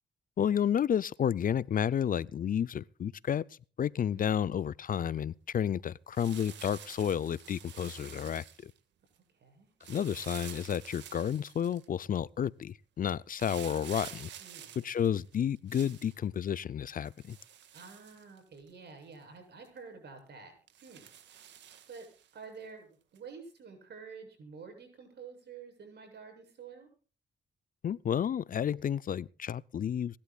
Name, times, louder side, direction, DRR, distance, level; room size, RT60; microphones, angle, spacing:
voice 1, 0.4-3.4 3.8-8.7 9.9-14.3 14.8-17.4 27.8-30.2, left 9 dB, 50° left, 0.5 m, -31 dB
voice 2, 4.0-4.3 9.3-9.7 14.4-15.2 17.7-20.5 20.8-21.1 21.4-21.6 21.9-22.1 22.3-26.9, right 5 dB, 70° right, 7.5 m, -49 dB
sound 1, 6.1-8.8 9.8-11.9 13.3-16.2 17.0-18.7 19.1-19.2 19.6-19.8 20.7-22.3 23.2-23.3, right 10 dB, 85° right, 1.8 m, -49 dB
26.0 x 11.5 x 2.4 m
cardioid pair, 65°, 18 cm